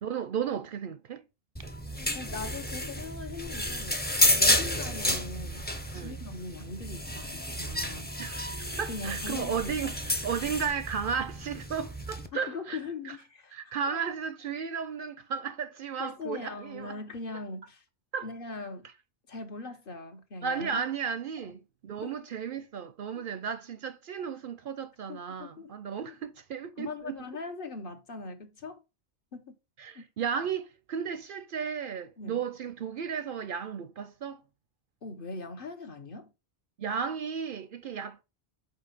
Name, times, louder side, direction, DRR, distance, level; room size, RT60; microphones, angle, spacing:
voice 1, 0.0-1.2 5.9-6.2 8.2-8.5 8.8-12.8 13.5-17.0 18.1-18.3 20.4-27.2 29.8-34.4 36.8-38.2, right 6 dB, 60° right, 0.7 m, -34 dB
sound 1, 1.6-12.3, left 1 dB, 10° left, 0.6 m, -31 dB
voice 2, 2.1-4.0 4.4-5.7 5.9-8.1 8.9-9.7 12.3-14.1 16.0-17.8 18.2-18.9 19.3-20.8 22.0-22.1 23.1-23.2 25.1-25.8 26.1-26.2 26.8-28.8 29.3-29.6 29.9-30.1 32.2-32.4 35.0-36.3, left 3 dB, 55° left, 1.2 m, -40 dB
5.4 x 4.1 x 5.4 m
omnidirectional pair, 1.1 m